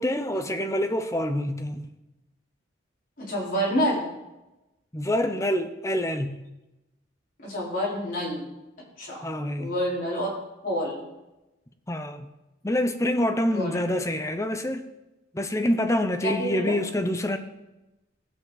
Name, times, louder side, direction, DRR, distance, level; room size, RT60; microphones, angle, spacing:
voice 1, 0.0-1.9 4.9-6.4 9.2-9.7 11.9-12.3 12.6-14.9 15.3-17.4, left 1 dB, 15° left, 0.6 m, -26 dB
voice 2, 3.2-4.1 7.4-8.5 9.0-9.2 9.6-10.3 10.6-11.0 13.5-13.8 16.2-16.7, equal, 45° left, 4.4 m, -28 dB
17.0 x 7.7 x 4.0 m
head